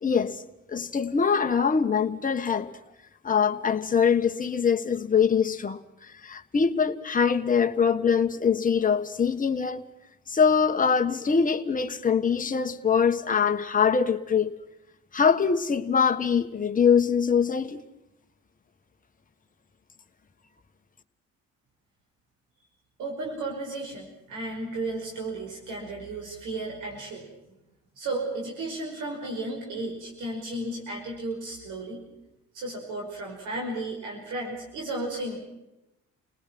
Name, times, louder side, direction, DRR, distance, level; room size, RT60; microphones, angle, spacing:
voice 1, 0.0-0.4 0.7-2.7 3.2-5.8 6.2-9.8 10.3-14.6 15.1-17.8, left 6 dB, 25° left, 1.4 m, -23 dB
voice 2, 23.0-27.3 28.0-32.0 32.5-35.4, right 2 dB, 85° right, 5.6 m, -34 dB
29.5 x 19.0 x 6.1 m
cardioid pair, 90°, 30 cm